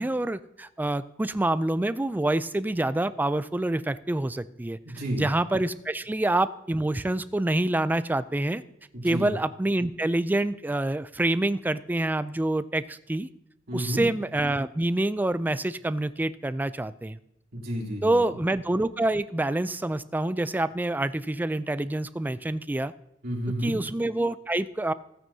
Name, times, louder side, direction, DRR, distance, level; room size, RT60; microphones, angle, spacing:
voice 1, 0.0-4.8 5.2-8.6 9.0-13.3 13.7-17.2 18.0-22.9 23.6-24.9, right 1 dB, 10° right, 14 dB, 0.3 m, -27 dB
voice 2, 4.8-5.2 8.9-9.3 13.7-14.0 17.5-18.2 23.2-23.8, equal, 55° right, -3 dB, 2.9 m, -31 dB
15.5 x 8.9 x 2.7 m, 0.85 s
head